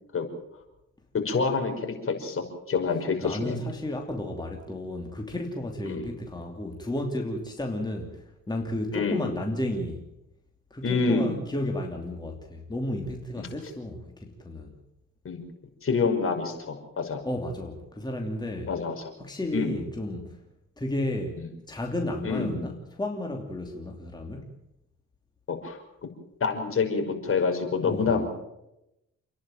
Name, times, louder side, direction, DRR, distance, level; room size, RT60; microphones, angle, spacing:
voice 1, 1.1-3.6 5.8-6.1 8.9-9.3 10.8-11.4 13.4-13.5 15.2-15.4 15.8-17.2 18.7-19.0 19.5-19.8 21.4-21.5 22.2-22.6 25.5-25.8 26.4-28.2, left 4 dB, 45° left, 4 dB, 5.6 m, -27 dB
voice 2, 3.2-10.0 10.7-14.7 17.2-18.7 19.2-20.3 20.8-21.4 21.7-24.5 27.8-28.2, left 1 dB, 15° left, 2 dB, 2.9 m, -32 dB
29.0 x 10.5 x 9.2 m, 0.88 s
cardioid pair, 90°, 30 cm